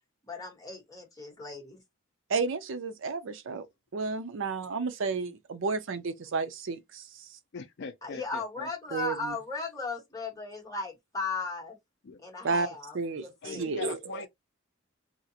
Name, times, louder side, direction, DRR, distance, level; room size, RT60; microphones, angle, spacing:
voice 1, 0.2-1.8 8.0-11.8 12.2-13.0 13.2-13.7, left 3 dB, 15° left, 1.3 m, -36 dB
voice 2, 2.3-3.7 3.9-7.0 8.9-9.3 12.4-12.7 12.9-14.0, right 4 dB, 65° right, 0.5 m, -32 dB
voice 3, 7.5-8.7 12.0-12.2 13.4-14.3, left 5 dB, 55° left, 0.4 m, -41 dB
2.8 x 2.4 x 2.7 m
head